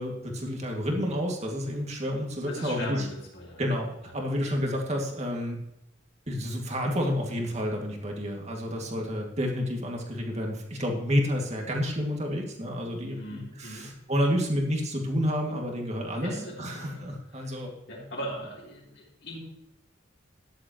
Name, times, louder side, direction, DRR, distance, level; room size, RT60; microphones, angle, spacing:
voice 1, 0.0-3.1 3.6-5.6 6.3-17.7, equal, 35° right, 1 dB, 2.3 m, -30 dB
voice 2, 2.5-3.6 13.2-13.9 16.2-17.1 17.4-17.6 17.9-19.4, equal, 55° left, -9 dB, 3.6 m, -39 dB
13.5 x 10.5 x 3.1 m, 0.84 s
head